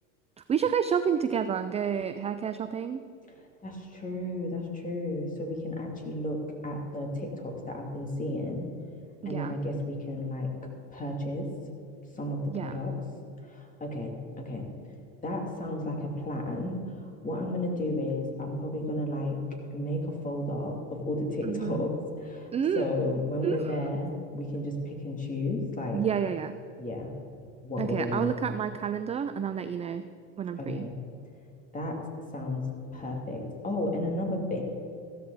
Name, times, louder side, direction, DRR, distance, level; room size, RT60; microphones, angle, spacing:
voice 1, 0.5-3.1 9.2-9.6 12.5-12.8 21.4-21.8 22.5-22.9 23.4-23.7 25.9-26.5 27.8-30.0 30.4-30.9, right 7 dB, 20° right, 10 dB, 0.4 m, -29 dB
voice 2, 3.6-8.7 9.3-10.5 10.9-11.5 12.1-12.9 13.4-14.7 15.2-16.8 17.2-19.4 19.7-22.5 22.8-26.0 26.8-27.1 27.6-28.3 30.6-30.9 31.7-32.0 32.3-32.6 32.9-34.6, left 1 dB, 20° left, 1 dB, 2.8 m, -32 dB
15.0 x 13.0 x 4.1 m, 2.5 s
supercardioid pair, 105°, 37 cm